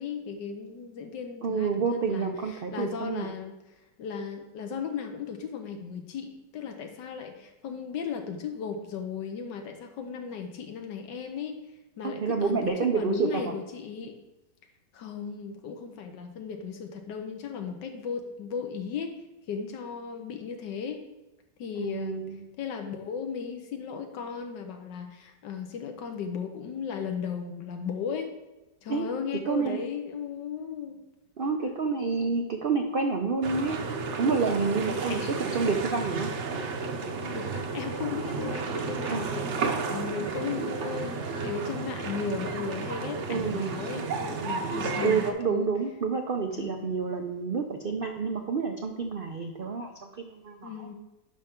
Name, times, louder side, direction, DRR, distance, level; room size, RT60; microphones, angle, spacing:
voice 1, 0.0-3.5 4.0-11.6 12.0-14.2 14.9-19.1 19.5-21.0 21.6-22.3 22.6-28.3 28.8-31.0 34.9-35.4 36.6-36.8 37.2-45.7 46.6-47.0 50.6-50.9, left 6 dB, 85° left, 5 dB, 1.6 m, -36 dB
voice 2, 1.4-3.3 12.0-13.4 21.8-22.5 28.9-29.1 29.5-29.8 31.4-33.8 34.2-36.3 39.1-39.3 43.3-43.7 45.0-50.9, right 5 dB, 90° right, 4 dB, 0.4 m, -29 dB
sound 1, 33.4-45.3, right 4 dB, 55° right, 0.9 m, -32 dB
10.0 x 5.5 x 3.7 m, 1.0 s
omnidirectional pair, 1.9 m